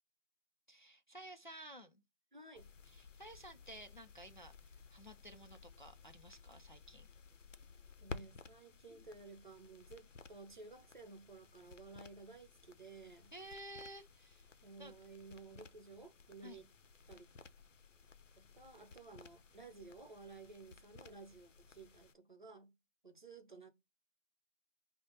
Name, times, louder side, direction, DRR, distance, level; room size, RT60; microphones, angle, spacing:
voice 1, 0.7-2.0 2.9-7.1 13.3-14.9 16.4-16.6, right 1 dB, 40° left, 0.4 m, -54 dB
voice 2, 2.3-2.7 8.0-13.3 14.6-16.7 17.1-17.3 18.4-22.7 23.0-23.7, right 3 dB, 40° right, 0.8 m, -55 dB
sound 1, 2.6-22.1, left 4 dB, 80° left, 0.6 m, -56 dB
5.5 x 2.1 x 2.7 m
figure-of-eight pair, 165°, 37 cm